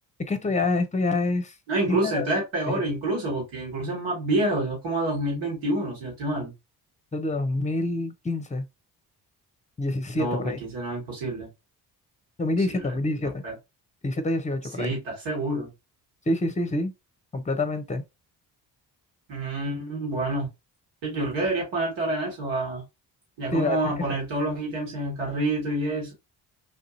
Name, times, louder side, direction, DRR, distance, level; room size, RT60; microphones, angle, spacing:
voice 1, 0.3-1.5 1.9-2.3 2.7-2.8 7.1-8.6 9.8-10.6 12.4-13.4 14.0-15.0 16.3-16.9 17.3-18.0 23.5-23.8, left 2 dB, 15° left, 0.8 m, -26 dB
voice 2, 1.7-6.5 10.1-11.5 12.7-12.9 13.4-13.5 14.8-15.7 19.3-20.5 21.0-22.8 23.4-26.1, right 2 dB, 70° right, 2.3 m, -28 dB
3.5 x 2.6 x 2.7 m
hypercardioid pair, 45°, 49 cm